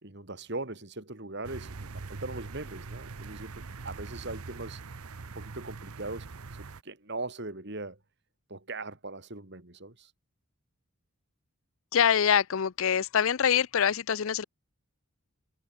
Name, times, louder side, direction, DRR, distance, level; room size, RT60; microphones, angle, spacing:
voice 1, 0.0-4.8 5.3-6.3 6.6-8.0 8.5-10.1, right 2 dB, 50° right, 2.5 m, -40 dB
sound 1, 1.4-6.8, right 4 dB, 80° right, 0.9 m, -42 dB
voice 2, 11.9-14.4, left 8 dB, 65° left, 0.5 m, -24 dB
head